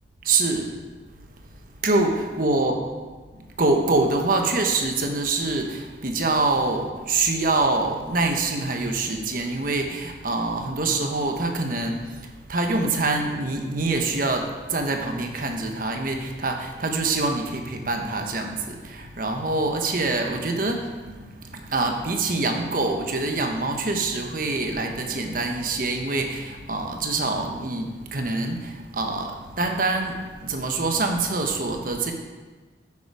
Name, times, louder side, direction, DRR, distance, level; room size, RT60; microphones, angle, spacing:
voice 1, 0.2-0.7 1.8-2.8 3.3-32.1, right 3 dB, 50° right, 3 dB, 1.1 m, -25 dB
9.9 x 7.2 x 4.8 m, 1.3 s
head